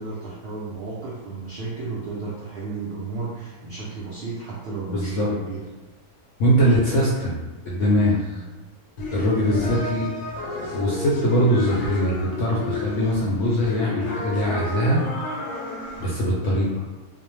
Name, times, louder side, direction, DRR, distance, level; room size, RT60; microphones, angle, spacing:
voice 1, 0.0-5.7 8.3-8.4, right 4 dB, 75° right, -7 dB, 0.5 m, -33 dB
voice 2, 4.9-5.3 6.4-7.4 7.6-8.4 9.1-10.1 10.6-15.0 16.0-16.7, equal, 65° left, -5 dB, 0.8 m, -22 dB
sound 1, 9.0-16.0, left 2 dB, 90° left, 1.2 m, -32 dB
2.6 x 2.0 x 3.0 m, 1.2 s
omnidirectional pair, 1.6 m